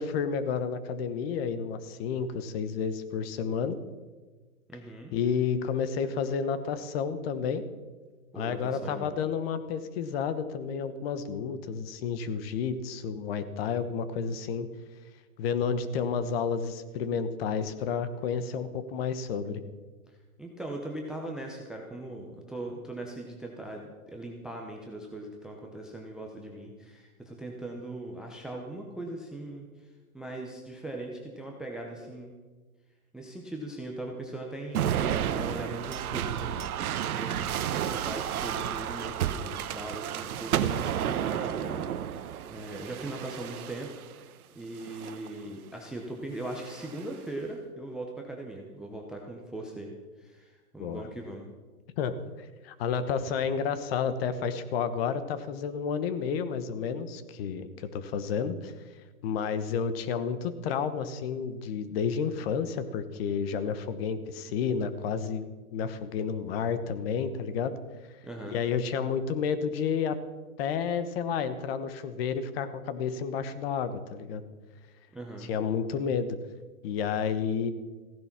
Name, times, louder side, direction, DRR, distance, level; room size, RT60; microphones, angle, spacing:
voice 1, 0.0-3.8 5.1-7.6 8.3-14.7 15.4-19.6 50.8-51.1 52.0-52.1 52.6-58.7 59.2-67.7 68.5-70.2 70.6-74.4 75.5-76.4 76.8-77.7, left 6 dB, 45° left, 12 dB, 1.2 m, -31 dB
voice 2, 4.7-5.1 8.3-9.2 20.4-29.7 30.1-32.3 33.1-43.9 44.2-49.9 50.2-51.5 68.2-68.6 75.1-75.5, right 1 dB, ahead, 1 dB, 0.5 m, -40 dB
sound 1, 34.7-44.1 44.8-45.3 46.4-47.1, right 10 dB, 80° right, 1.0 m, -32 dB
15.5 x 11.0 x 5.9 m, 1.3 s
hypercardioid pair, 150°, 43 cm